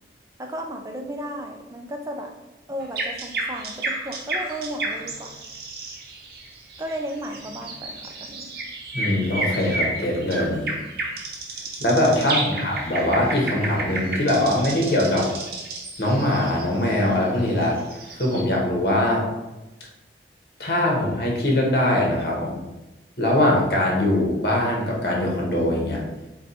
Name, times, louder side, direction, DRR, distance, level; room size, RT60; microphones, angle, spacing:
voice 1, 0.4-2.3 2.7-5.4 6.8-8.5 12.2-12.5, equal, 20° right, 3 dB, 0.4 m, -34 dB
sound 1, 2.8-18.4, right 2 dB, 55° right, 0.7 m, -32 dB
voice 2, 8.9-10.8 11.8-15.3 16.0-17.8 18.1-19.2 20.6-22.6 23.2-26.0, left 1 dB, 60° left, -2 dB, 1.0 m, -22 dB
4.2 x 2.3 x 4.1 m, 1.0 s
head